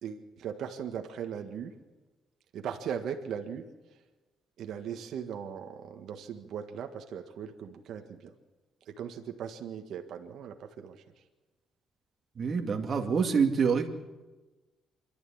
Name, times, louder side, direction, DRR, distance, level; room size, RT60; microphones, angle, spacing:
voice 1, 0.0-1.7 2.5-3.6 4.6-8.3 8.8-11.2, right 8 dB, 75° right, 5 dB, 1.6 m, -39 dB
voice 2, 12.4-13.9, right 6 dB, 45° right, 2 dB, 2.4 m, -26 dB
26.0 x 12.5 x 8.7 m, 1.2 s
cardioid pair, 90°, 0 cm